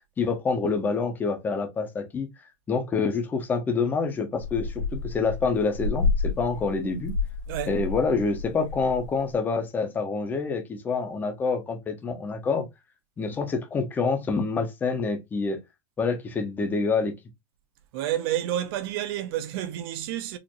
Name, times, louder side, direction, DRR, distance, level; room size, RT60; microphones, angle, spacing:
voice 1, 0.2-2.3 2.7-7.2 7.7-12.7 13.2-15.6 16.0-17.1, left 4 dB, 10° left, 0.6 m, -27 dB
sound 1, 4.4-9.3, left 4 dB, 75° left, 1.6 m, -30 dB
voice 2, 7.5-7.8 17.9-20.4, right 12 dB, 50° right, 0.6 m, -29 dB
4.3 x 2.5 x 2.9 m
supercardioid pair, 175°, 16 cm